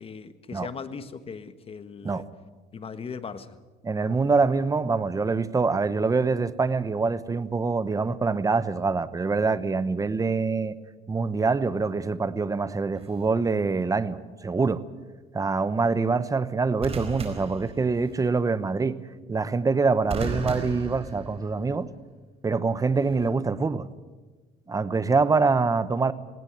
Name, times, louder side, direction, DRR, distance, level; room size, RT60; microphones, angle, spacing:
voice 1, 0.0-2.3 2.7-3.6, left 5 dB, 35° left, 1.4 m, -38 dB
voice 2, 3.8-10.7 11.1-14.8 15.3-19.0 19.3-21.9 22.4-23.9 24.7-26.1, right 4 dB, 20° right, 1.0 m, -25 dB
sound 1, 12.9-13.3 16.8-18.3 20.1-21.8 23.0-23.3, right 4 dB, 35° right, 4.5 m, -35 dB
18.5 x 18.5 x 9.4 m
cardioid pair, 110°, 17 cm